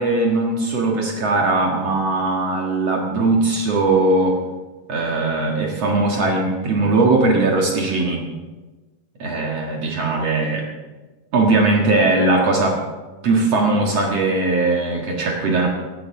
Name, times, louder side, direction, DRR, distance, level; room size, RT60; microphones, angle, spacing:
voice 1, 0.0-4.4 4.9-8.3 9.2-10.7 11.3-12.8 13.2-15.7, right 2 dB, 55° right, 0 dB, 2.5 m, -19 dB
17.0 x 16.5 x 3.8 m, 1.2 s
omnidirectional pair, 3.9 m